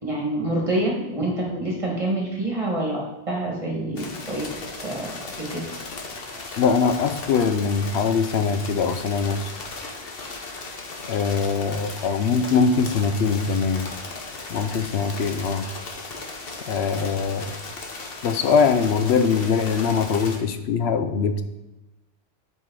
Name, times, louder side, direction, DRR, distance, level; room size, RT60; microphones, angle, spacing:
voice 1, 0.0-4.4 4.8-5.1 5.4-5.6, right 1 dB, 30° right, -2 dB, 1.8 m, -26 dB
sound 1, 4.0-20.4, left 3 dB, 65° left, 1.2 m, -36 dB
voice 2, 6.6-9.5 11.1-13.9 14.5-15.7 16.7-17.5 18.2-21.4, left 5 dB, 80° left, 9 dB, 0.9 m, -22 dB
7.7 x 5.0 x 3.8 m, 1.0 s
omnidirectional pair, 1.1 m